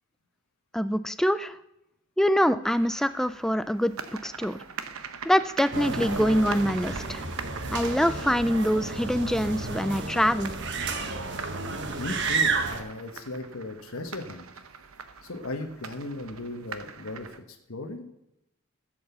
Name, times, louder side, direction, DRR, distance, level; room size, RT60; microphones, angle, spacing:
voice 1, 0.7-1.6 2.2-4.6 5.2-7.2 7.7-10.5, equal, ahead, 13 dB, 0.4 m, -25 dB
sound 1, 2.6-17.4, right 6 dB, 75° right, 0.9 m, -43 dB
sound 2, 5.7-12.8, right 4 dB, 55° right, 1.3 m, -31 dB
voice 2, 12.0-14.5 15.2-18.0, left 2 dB, 70° left, 5 dB, 1.2 m, -37 dB
15.0 x 7.9 x 6.9 m, 0.87 s
head